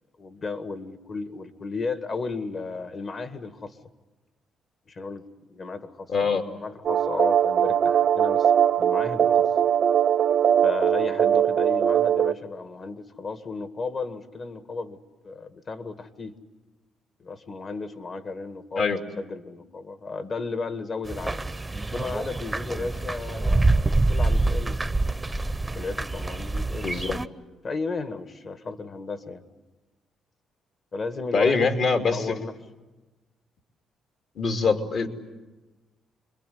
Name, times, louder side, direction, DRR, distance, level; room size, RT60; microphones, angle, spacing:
voice 1, 0.2-3.8 4.9-8.5 8.8-9.5 10.6-15.0 15.2-16.3 17.2-21.4 21.9-24.8 25.7-26.9 27.6-29.4 30.9-31.7 32.1-32.5, left 4 dB, 45° left, 10 dB, 1.9 m, -34 dB
voice 2, 6.1-6.4 18.8-19.0 26.8-27.2 31.3-32.4 34.4-35.1, left 4 dB, 60° left, 4 dB, 3.0 m, -23 dB
sound 1, 6.8-12.3, right 9 dB, 60° right, 0.8 m, -21 dB
sound 2, 21.0-27.3, right 2 dB, 15° right, 0.8 m, -26 dB
27.0 x 22.5 x 9.5 m, 1.1 s
cardioid pair, 90°, 0 cm